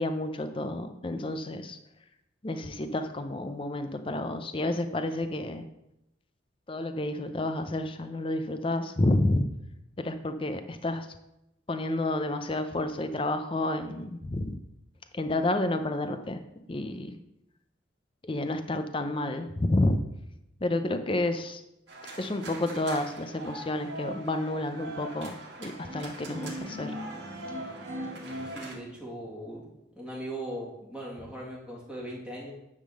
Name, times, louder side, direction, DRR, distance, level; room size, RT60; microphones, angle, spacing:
voice 1, 0.0-1.8 2.4-5.6 6.7-9.4 10.0-11.1 11.7-14.6 15.1-16.4 16.7-17.2 18.2-20.0 20.6-21.6 22.2-27.0, left 1 dB, 30° left, 8 dB, 0.5 m, -30 dB
sound 1, 21.9-28.7, right 1 dB, 65° right, 2.1 m, -40 dB
voice 2, 28.5-29.6 30.0-32.5, right 1 dB, 5° right, -4 dB, 2.0 m, -39 dB
10.0 x 3.7 x 6.2 m, 0.86 s
head